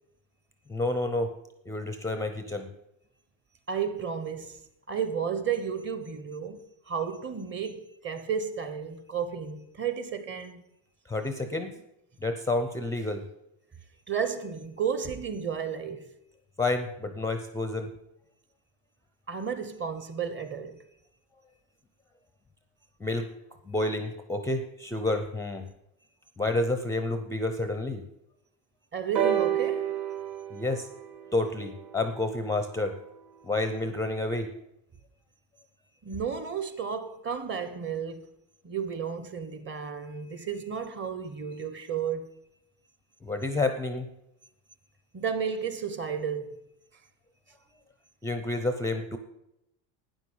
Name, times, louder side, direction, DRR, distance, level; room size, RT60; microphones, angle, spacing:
voice 1, 0.7-1.3 1.7-2.7 11.1-11.7 12.2-13.3 16.6-17.9 23.0-23.3 23.7-25.7 26.4-28.1 30.5-30.9 31.3-33.0 33.4-34.5 43.2-44.1 48.2-49.2, left 2 dB, 5° left, 0.5 m, -29 dB
voice 2, 3.7-4.6 4.9-10.6 14.1-16.1 19.3-20.8 28.9-30.0 36.0-38.3 38.6-42.3 45.1-46.6, right 7 dB, 25° right, 1.0 m, -32 dB
sound 1, 29.1-33.0 33.9-34.0, right 10 dB, 50° right, 2.3 m, -31 dB
12.5 x 9.3 x 5.5 m
cardioid pair, 150°, 42 cm